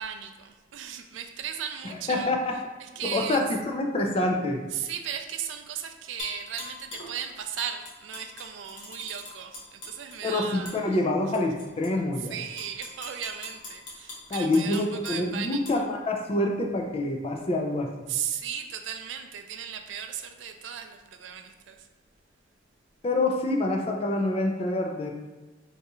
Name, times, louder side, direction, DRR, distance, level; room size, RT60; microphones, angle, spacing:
voice 1, 0.0-2.3 2.8-3.4 4.7-11.0 12.2-15.8 18.1-21.9, right 9 dB, 80° right, 7 dB, 0.3 m, -36 dB
voice 2, 2.1-2.6 3.0-4.6 10.2-12.3 14.3-17.9 23.0-25.1, left 2 dB, 30° left, 2 dB, 0.4 m, -26 dB
Tap / Glass, 6.2-7.1 7.6-10.2 10.7-10.8 11.3-11.9 12.4-15.2 15.7-15.8, left 3 dB, 80° left, 0.8 m, -42 dB
2.6 x 2.4 x 4.1 m, 1.2 s
head